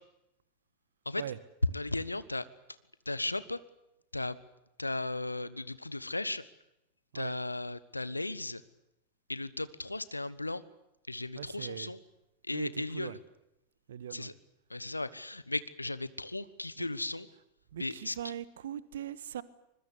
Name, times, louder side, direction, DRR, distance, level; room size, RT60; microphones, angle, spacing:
voice 1, 1.7-2.5 3.0-3.6 4.1-4.4 4.8-6.4 7.1-8.6 9.3-10.6 11.1-12.0 12.4-13.2 14.1-14.3 14.7-17.3 17.8-18.1, left 2 dB, 85° left, 17 dB, 1.2 m, -36 dB
voice 2, 11.3-11.9 12.5-13.2 13.9-14.3 16.8-16.9 17.7-19.4, right 10 dB, 60° right, 18 dB, 1.2 m, -41 dB
24.5 x 22.0 x 8.2 m, 0.87 s
figure-of-eight pair, 90°, 0 cm